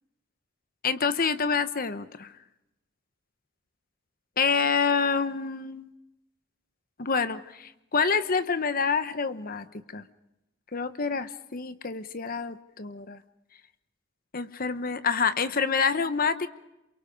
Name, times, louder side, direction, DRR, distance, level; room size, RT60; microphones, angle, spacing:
voice 1, 0.8-2.3 4.4-5.9 7.0-9.7 9.9-10.0 10.7-13.2 14.3-16.5, left 5 dB, 45° left, 11 dB, 1.0 m, -27 dB
28.0 x 23.5 x 5.2 m, 0.93 s
head